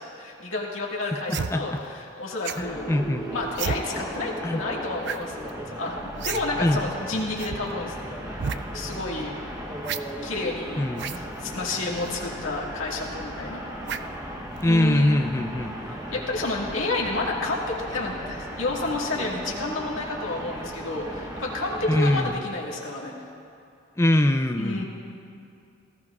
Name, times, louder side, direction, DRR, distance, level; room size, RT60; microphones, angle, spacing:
voice 1, 0.0-2.9 3.3-7.9 8.4-9.3 10.2-13.6 14.6-15.3 15.8-23.3 24.6-24.8, left 2 dB, 70° left, -3 dB, 1.9 m, -30 dB
voice 2, 1.3-1.6 2.6-3.2 4.4-4.6 6.6-6.8 10.8-11.1 14.6-15.7 21.9-22.4 24.0-24.8, left 1 dB, 15° left, 7 dB, 0.4 m, -22 dB
sound 1, 1.3-1.5 2.4-2.7 3.5-3.8 5.0-5.2 5.5-5.6 6.2-6.4 6.7-6.8 7.4-7.6 8.3-8.6 9.8-10.0 10.9-11.2 12.0-12.1 13.9-14.2 14.6-14.8, right 7 dB, 55° right, 0.4 m, -31 dB
sound 2, 2.6-22.3, equal, 15° right, 0.9 m, -36 dB
19.0 x 14.0 x 2.4 m, 2.5 s
head